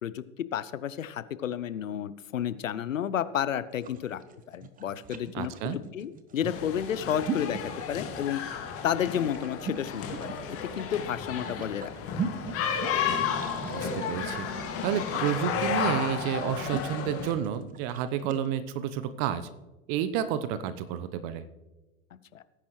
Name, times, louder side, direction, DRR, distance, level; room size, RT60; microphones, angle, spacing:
voice 1, 0.0-4.2 4.5-7.6 7.9-8.4 8.8-12.2 22.3-22.4, left 9 dB, 75° left, 15 dB, 0.8 m, -31 dB
sound 1, 3.7-18.5, right 6 dB, 20° right, 1.1 m, -40 dB
voice 2, 5.3-5.8 13.7-14.5 14.8-19.5 19.9-21.4, right 9 dB, 40° right, 12 dB, 1.0 m, -30 dB
sound 2, 6.4-17.3, left 6 dB, 35° left, 2.2 m, -33 dB
18.0 x 10.0 x 3.2 m, 1.1 s
figure-of-eight pair, 95°, 39 cm